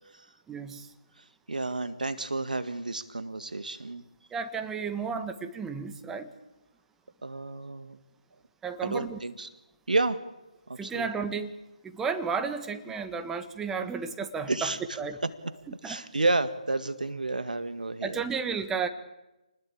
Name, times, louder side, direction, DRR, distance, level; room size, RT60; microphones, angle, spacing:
voice 1, 0.5-0.9 4.3-6.3 8.6-9.2 10.8-11.5 11.8-15.2 15.7-16.0 18.0-18.9, right 5 dB, 10° right, 8 dB, 1.6 m, -33 dB
voice 2, 1.5-4.0 7.2-8.0 8.8-9.5 9.9-10.3 10.7-11.1 14.5-14.8 15.4-15.5 15.8-18.2, right 2 dB, 80° right, 12 dB, 1.8 m, -30 dB
28.5 x 20.0 x 8.6 m, 0.98 s
figure-of-eight pair, 150°, 4 cm